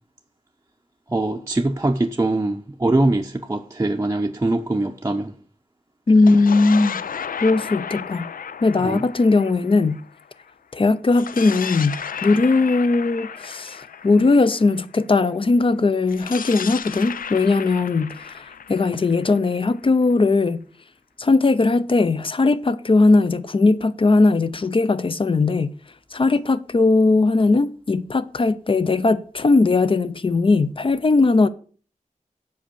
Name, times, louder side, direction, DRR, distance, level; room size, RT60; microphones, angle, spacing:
voice 1, 1.1-5.3 8.8-9.0, right 2 dB, 20° right, 0.7 m, -22 dB
sound 1, 6.1-10.5 11.1-15.0 16.1-19.9, left 7 dB, 80° left, 0.5 m, -34 dB
voice 2, 6.1-7.0 7.4-8.3 8.6-10.0 10.7-20.6 21.2-25.8 26.1-31.5, left 3 dB, 40° left, 0.6 m, -19 dB
7.7 x 5.6 x 6.9 m
wide cardioid pair, 115°, 14 cm